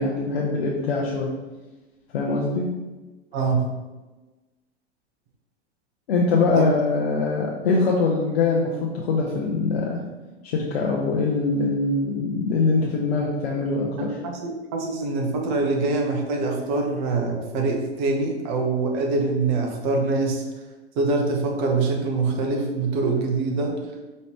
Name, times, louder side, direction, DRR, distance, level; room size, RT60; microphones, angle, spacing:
voice 1, 0.0-1.3 2.1-2.7 6.1-10.0 10.4-14.1, left 3 dB, 65° left, -2 dB, 0.8 m, -23 dB
voice 2, 3.3-3.7 6.6-6.7 14.2-20.4 21.0-23.8, right 3 dB, 45° right, 1 dB, 1.0 m, -24 dB
5.4 x 3.1 x 3.0 m, 1.2 s
figure-of-eight pair, 95°, 33 cm